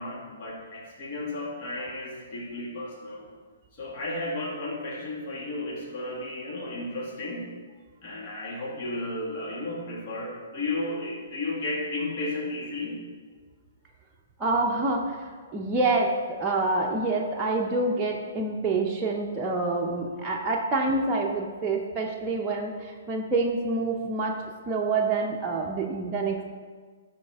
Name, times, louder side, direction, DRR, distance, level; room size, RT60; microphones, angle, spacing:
voice 1, 0.0-3.3 3.7-7.5 8.0-13.0, left 2 dB, 50° left, -4 dB, 2.0 m, -33 dB
voice 2, 14.4-15.2 15.5-16.1 16.4-22.7 23.1-24.4 24.7-26.4, right 3 dB, 15° right, -3 dB, 0.7 m, -27 dB
12.5 x 4.2 x 3.6 m, 1.5 s
hypercardioid pair, 130°, 0 cm